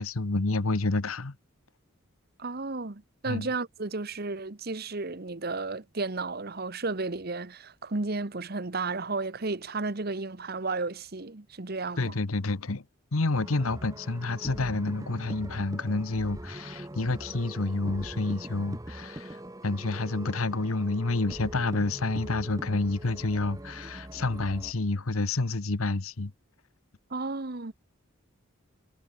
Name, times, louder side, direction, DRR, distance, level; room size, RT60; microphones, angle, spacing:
voice 1, 0.0-1.4 3.3-3.5 12.0-12.8 13.1-26.3, left 3 dB, 85° left, 1.1 m, -29 dB
voice 2, 2.4-12.2 27.1-27.7, right 3 dB, 45° right, 1.1 m, -33 dB
sound 1, 13.3-24.7, right 1 dB, 15° right, 1.2 m, -42 dB
head